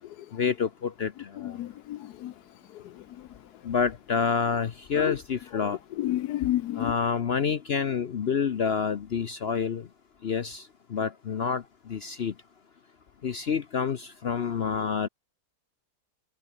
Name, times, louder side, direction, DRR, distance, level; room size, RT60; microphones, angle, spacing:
voice 1, 0.3-1.6 3.6-5.8 6.8-9.9 10.2-12.3 13.2-15.1, left 6 dB, 50° left, 0.8 m, -28 dB
voice 2, 1.4-2.3 2.7-3.0 5.0-5.2 5.5-5.7 6.0-6.9, left 14 dB, 80° left, 1.2 m, -31 dB
omnidirectional pair, 1.7 m